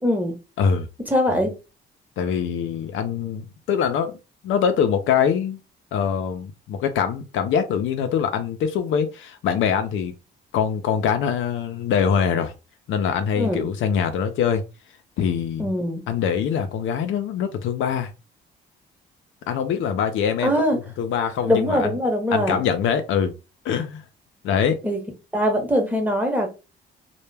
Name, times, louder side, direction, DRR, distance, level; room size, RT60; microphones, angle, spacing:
voice 1, 0.0-0.3 1.1-1.5 13.4-13.7 15.6-16.0 20.4-20.8 21.4-22.6 24.8-25.0 25.3-26.6, equal, 10° right, 0.9 m, -22 dB
voice 2, 2.2-4.1 4.4-5.6 5.9-10.1 10.5-12.5 12.9-14.6 15.2-15.7 16.1-18.1 19.5-22.0 22.3-23.3 23.6-24.0 24.4-24.8, left 7 dB, 75° left, 0.5 m, -23 dB
2.1 x 2.1 x 3.2 m
cardioid pair, 90°, 20 cm